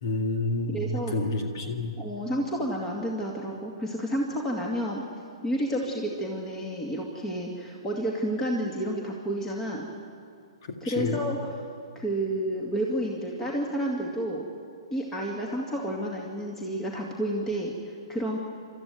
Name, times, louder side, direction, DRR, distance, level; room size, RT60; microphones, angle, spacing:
voice 1, 0.0-2.0 10.6-11.3, left 2 dB, 50° left, 3 dB, 2.0 m, -29 dB
voice 2, 0.7-1.2 2.0-5.0 5.4-9.9 10.8-11.4 12.0-14.5 14.9-18.4, right 1 dB, 15° left, -1 dB, 2.3 m, -30 dB
29.0 x 13.5 x 9.4 m, 2.4 s
figure-of-eight pair, 120°, 3 cm